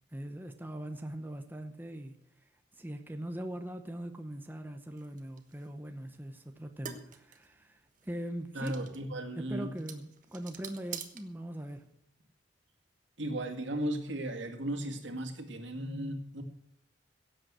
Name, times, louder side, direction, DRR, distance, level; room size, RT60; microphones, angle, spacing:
voice 1, 0.1-2.2 2.7-8.7 9.4-11.8, right 1 dB, 10° right, 6 dB, 0.8 m, -41 dB
sound 1, 5.0-11.9, right 7 dB, 45° right, 1.3 m, -49 dB
voice 2, 8.5-9.8 13.2-16.4, right 1 dB, 75° right, 5 dB, 2.2 m, -36 dB
16.5 x 8.0 x 6.2 m, 0.77 s
head